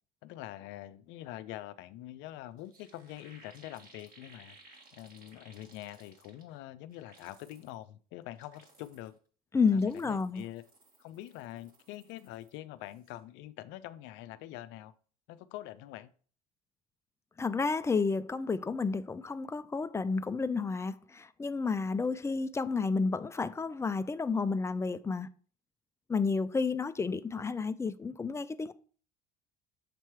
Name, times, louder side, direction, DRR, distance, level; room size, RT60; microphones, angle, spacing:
voice 1, 0.2-9.2 9.7-10.6 11.0-14.9 15.3-16.1, left 14 dB, 65° left, 0.5 m, -45 dB
sound 1, 2.3-2.4 2.6-6.6 6.9-7.7 8.2-9.2 9.6-12.6 12.8-13.2, right 3 dB, 45° right, 1.6 m, -60 dB
voice 2, 9.5-10.4 17.4-25.3 26.1-28.7, left 4 dB, 15° left, 0.4 m, -31 dB
6.7 x 3.0 x 4.6 m
hypercardioid pair, 70°, 20 cm